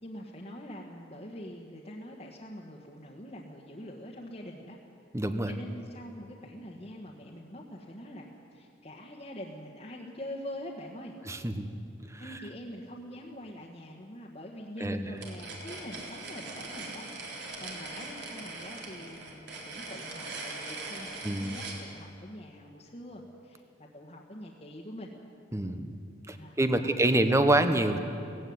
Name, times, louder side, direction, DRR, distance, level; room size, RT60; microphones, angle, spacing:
voice 1, 0.0-4.8 5.5-11.2 12.2-25.1 26.2-27.4, equal, 35° left, -3 dB, 1.6 m, -44 dB
voice 2, 5.1-5.5 11.3-11.7 12.1-12.2 14.8-15.0 21.2-21.5 25.5-26.0 26.3-28.0, right 1 dB, 15° right, 9 dB, 1.0 m, -26 dB
sound 1, 15.2-21.8, right 3 dB, 60° right, 3.7 m, -41 dB
18.0 x 16.0 x 9.6 m, 2.5 s
head